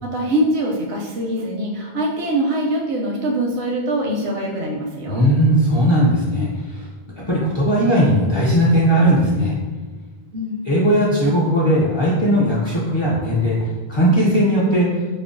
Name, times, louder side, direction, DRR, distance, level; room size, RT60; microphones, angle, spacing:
voice 1, 0.0-5.3 10.3-10.7, right 1 dB, 85° right, -1 dB, 0.8 m, -23 dB
voice 2, 5.1-6.8 7.3-9.5 10.6-13.6 13.9-14.9, equal, 35° left, -7 dB, 0.5 m, -17 dB
5.1 x 2.0 x 2.5 m, 1.4 s
omnidirectional pair, 1.0 m